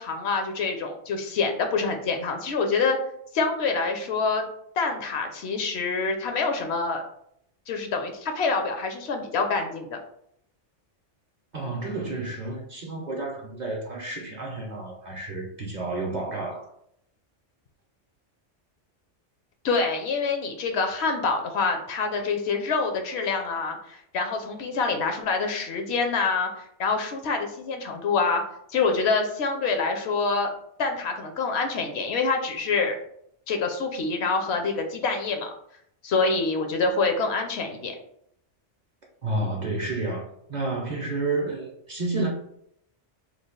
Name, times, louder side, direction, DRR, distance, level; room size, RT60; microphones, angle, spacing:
voice 1, 0.0-3.0 3.3-4.4 4.8-7.0 7.7-10.0 19.6-28.4 28.7-30.5 30.8-33.0 33.5-35.5 36.0-37.9, left 4 dB, 70° left, 4 dB, 0.8 m, -26 dB
voice 2, 11.5-16.7 39.2-42.3, right 2 dB, 45° right, -1 dB, 0.6 m, -30 dB
3.1 x 2.3 x 3.6 m, 0.71 s
omnidirectional pair, 1.2 m